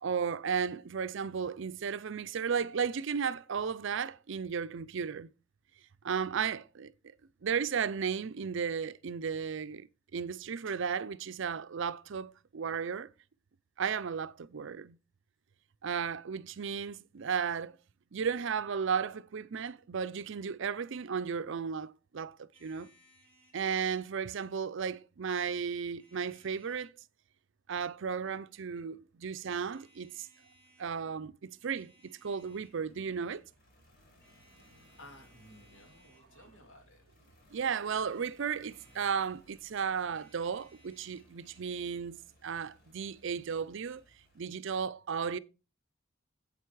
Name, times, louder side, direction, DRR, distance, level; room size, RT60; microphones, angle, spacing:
voice 1, 0.0-5.3 6.0-6.9 7.4-9.9 10.1-13.1 13.8-15.0 15.8-17.8 18.1-22.9 23.5-26.9 27.7-30.3 30.8-33.4 37.5-44.0 44.4-45.4, right 6 dB, 65° right, 0.5 m, -34 dB
sound 1, 22.5-23.6 25.3-26.9 28.4-28.9 29.5-30.9 31.5-32.8 34.2-36.6 38.0-39.3 40.0-41.8, right 1 dB, 10° left, 3.0 m, -65 dB
sound 2, 32.4-44.5, left 1 dB, 50° left, 4.4 m, -64 dB
voice 2, 34.5-37.4, left 1 dB, 70° left, 2.7 m, -57 dB
8.3 x 8.0 x 4.7 m
head